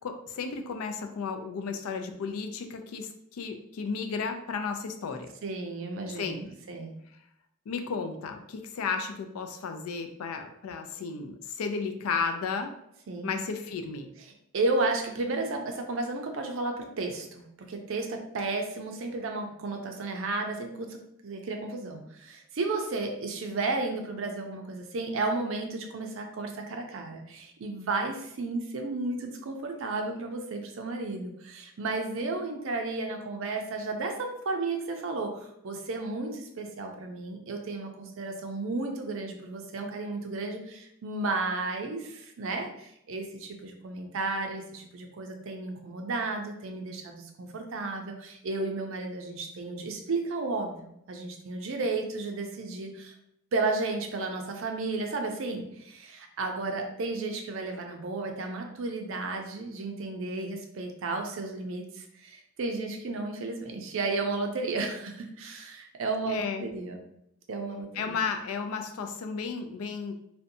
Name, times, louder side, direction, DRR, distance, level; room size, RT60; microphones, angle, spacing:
voice 1, 0.0-5.3 6.2-6.4 7.7-12.7 13.2-14.1 66.2-66.7 67.9-70.1, left 5 dB, 80° left, 6 dB, 0.3 m, -33 dB
voice 2, 5.4-6.9 13.1-13.3 14.5-53.1 53.5-67.0 67.5-68.1, right 3 dB, 60° right, 3 dB, 0.4 m, -33 dB
2.6 x 2.1 x 2.6 m, 0.76 s
head